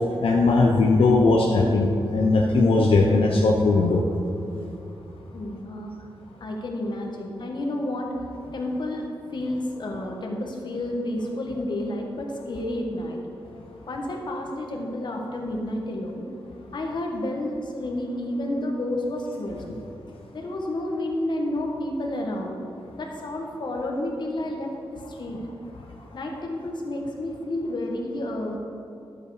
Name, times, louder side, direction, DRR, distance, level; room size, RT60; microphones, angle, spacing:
voice 1, 0.2-4.0, left 3 dB, 75° left, -1 dB, 0.8 m, -19 dB
voice 2, 5.3-5.9 6.4-8.1 8.5-13.2 13.9-16.2 16.7-19.8 20.3-22.6 22.9-25.4 26.1-28.6, left 1 dB, 55° left, 0 dB, 1.4 m, -30 dB
12.0 x 7.4 x 4.9 m, 2.6 s
wide cardioid pair, 165°, 9 cm